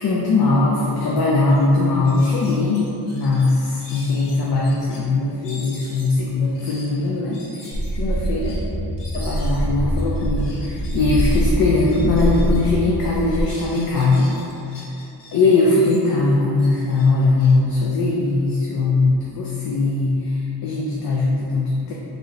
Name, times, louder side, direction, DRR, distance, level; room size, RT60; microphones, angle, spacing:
voice 1, 0.0-8.5 9.1-14.4 14.7-14.8 15.3-21.9, left 3 dB, 60° left, -4 dB, 0.5 m, -20 dB
sound 1, 1.1-1.2 1.5-1.7 2.0-5.0 5.4-12.7 13.0-15.3 15.7-18.6, left 2 dB, 80° left, 0.9 m, -44 dB
sound 2, 7.7-13.4, right 1 dB, 90° right, 0.9 m, -23 dB
4.3 x 2.7 x 3.1 m, 2.8 s
wide cardioid pair, 165°, 41 cm